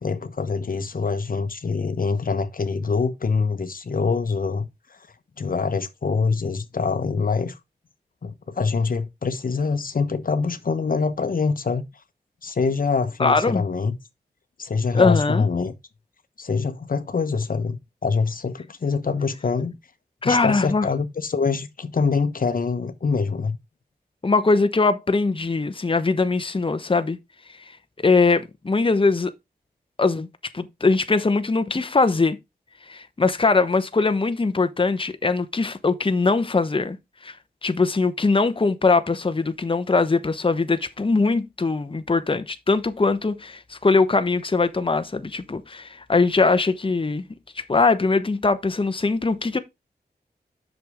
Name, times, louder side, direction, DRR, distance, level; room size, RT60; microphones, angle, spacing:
voice 1, 0.0-5.0 5.4-7.6 8.2-11.8 12.4-14.0 14.6-15.7 16.4-19.7 20.2-23.6, left 4 dB, 60° left, 1.1 m, -24 dB
voice 2, 13.2-13.6 14.9-15.5 20.2-20.9 24.2-27.2 27.7-29.3 30.0-30.3 30.5-32.4 32.9-37.0 37.2-37.4 37.6-47.3 47.5-49.6, left 3 dB, 30° left, 1.1 m, -21 dB
7.8 x 6.5 x 3.6 m
cardioid pair, 50°, 17 cm